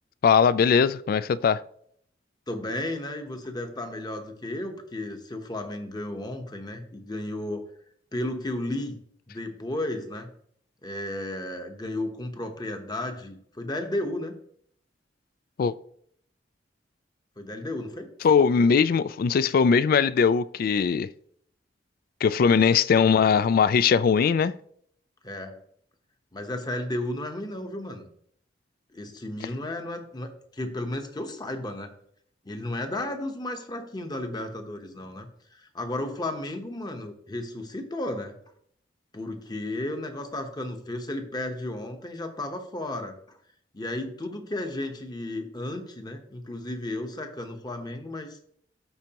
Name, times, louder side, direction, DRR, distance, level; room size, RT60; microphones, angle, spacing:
voice 1, 0.2-1.6 15.6-15.7 18.2-21.1 22.2-24.5, left 6 dB, 55° left, 0.3 m, -20 dB
voice 2, 2.5-7.6 8.1-9.0 9.3-10.3 10.8-14.3 17.4-18.1 22.4-22.6 25.2-25.6 26.3-28.1 28.9-31.9 32.4-38.4 39.1-43.4 43.7-48.4, left 1 dB, 25° left, 0.9 m, -33 dB
12.5 x 4.5 x 2.9 m
head